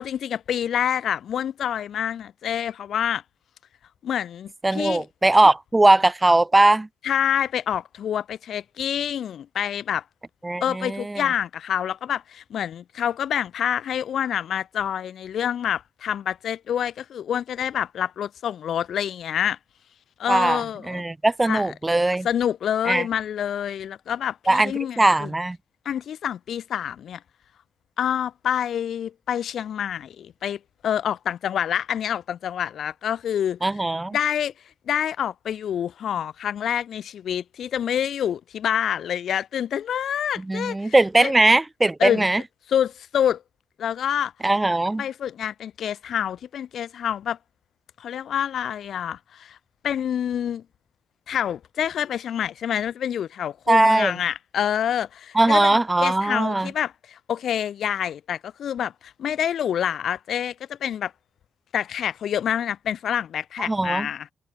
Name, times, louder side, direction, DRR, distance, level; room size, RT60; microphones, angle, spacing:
voice 1, 0.0-3.2 4.0-5.0 7.0-10.0 10.6-19.6 20.2-21.0 21.5-21.6 22.2-25.3 25.9-27.2 28.0-33.6 34.1-34.5 34.9-41.0 41.2-41.3 42.0-42.3 42.7-43.4 43.8-44.3 45.0-47.4 48.0-49.6 49.8-50.6 51.3-61.1 61.7-64.3, left 9 dB, 60° left, 4.1 m, -27 dB
voice 2, 4.6-6.9 10.4-11.3 20.3-22.3 22.9-23.1 24.5-25.6 33.6-34.2 40.4-42.4 44.4-45.0 53.7-54.1 55.3-56.7 63.6-64.1, right 2 dB, 10° right, 1.1 m, -20 dB
cardioid pair, 150°, 0 cm